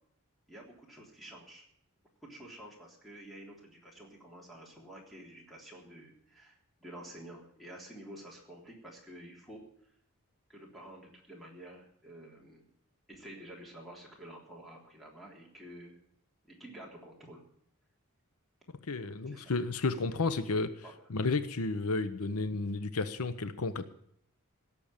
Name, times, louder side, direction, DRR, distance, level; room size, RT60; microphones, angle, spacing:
voice 1, 0.5-1.6 2.2-9.7 10.5-12.7 13.1-16.0 16.5-17.4 19.3-19.5 20.1-20.4 20.8-20.9, right 1 dB, ahead, -2 dB, 3.4 m, -50 dB
voice 2, 18.9-20.7 21.1-23.9, left 3 dB, 75° left, 12 dB, 0.8 m, -32 dB
17.0 x 7.0 x 8.7 m, 0.68 s
head